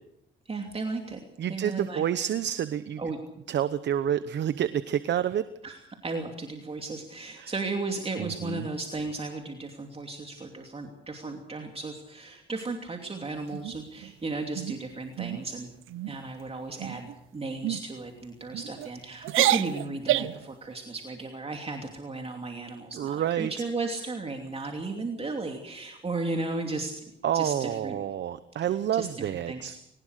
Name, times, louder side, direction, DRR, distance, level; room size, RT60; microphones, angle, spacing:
voice 1, 0.4-2.0 3.0-3.2 5.6-15.7 16.1-26.9 27.3-28.0 28.6-28.7 28.9-29.8, right 3 dB, 30° right, 3 dB, 2.9 m, -35 dB
voice 2, 1.4-3.0 3.5-5.5 7.4-7.5 8.2-8.6 22.9-23.5 27.2-29.7, right 10 dB, 60° right, 13 dB, 1.0 m, -28 dB
sound 1, 13.5-14.1 14.5-14.8 15.2-15.4 15.8-16.2 16.8-17.1 17.6-17.8 18.5-18.9 19.2-20.5, right 14 dB, 90° right, 0.8 m, -28 dB
21.5 x 19.5 x 6.6 m, 0.81 s
cardioid pair, 90°, 20 cm